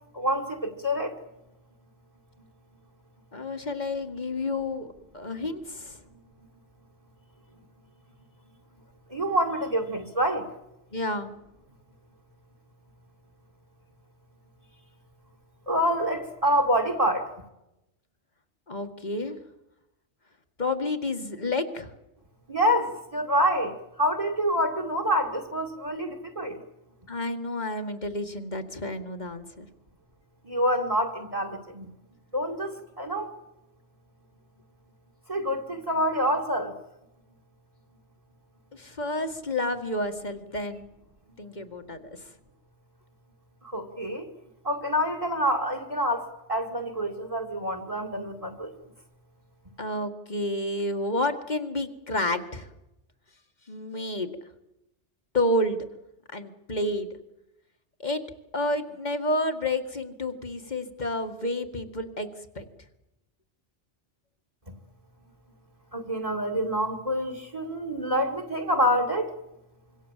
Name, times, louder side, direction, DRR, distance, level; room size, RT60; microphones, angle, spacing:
voice 1, 0.1-1.1 9.1-10.5 15.7-17.3 22.5-26.6 30.4-31.9 32.3-33.3 35.3-36.7 43.7-44.3 44.6-48.7 65.9-69.3, equal, 30° right, 5 dB, 2.4 m, -27 dB
voice 2, 3.3-4.9 5.1-6.0 10.9-11.3 18.7-19.4 20.6-21.9 27.1-29.7 38.7-40.9 41.4-42.3 49.8-52.7 53.7-54.3 55.3-55.8 56.3-57.1 58.0-58.2 58.5-62.7, left 1 dB, 40° left, 7 dB, 2.1 m, -30 dB
26.0 x 24.0 x 7.5 m, 0.94 s
omnidirectional pair, 1.2 m